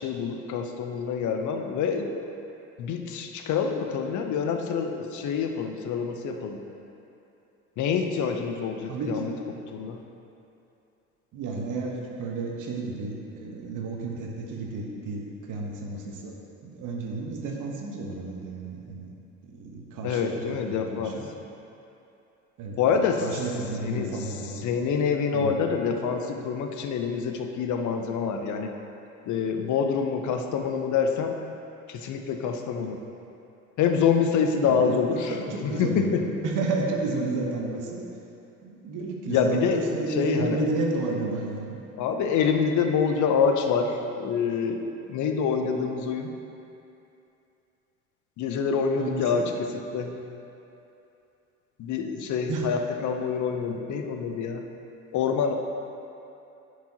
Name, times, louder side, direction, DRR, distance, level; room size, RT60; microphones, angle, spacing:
voice 1, 0.0-2.1 2.8-6.6 7.8-9.3 9.7-10.0 20.0-21.2 22.8-23.4 23.8-24.3 24.6-28.7 29.3-31.4 31.9-33.0 33.8-35.4 35.6-36.2 39.3-39.8 40.1-40.6 42.0-46.3 48.4-49.7 49.9-50.2 51.8-54.6 55.1-55.5, left 6 dB, 55° left, 4 dB, 0.7 m, -26 dB
voice 2, 8.9-9.3 11.3-19.1 19.4-21.3 22.6-22.8 23.2-24.6 25.3-25.5 34.7-36.1 36.4-38.0 38.6-41.8 49.0-49.4 52.5-52.7, right 3 dB, 55° right, -1 dB, 1.2 m, -32 dB
10.5 x 4.8 x 2.9 m, 2.8 s
hypercardioid pair, 60°, 36 cm